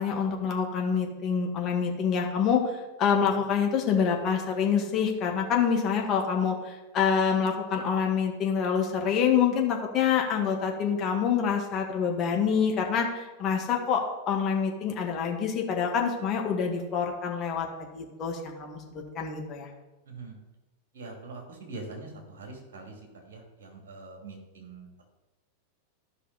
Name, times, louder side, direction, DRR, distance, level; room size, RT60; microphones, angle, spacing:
voice 1, 0.0-2.6 3.0-19.7, left 7 dB, 30° left, 1 dB, 1.7 m, -26 dB
voice 2, 20.0-20.4 20.9-25.0, right 3 dB, 60° right, 1 dB, 2.7 m, -43 dB
13.0 x 5.5 x 4.1 m, 1.1 s
figure-of-eight pair, 90°, 0 cm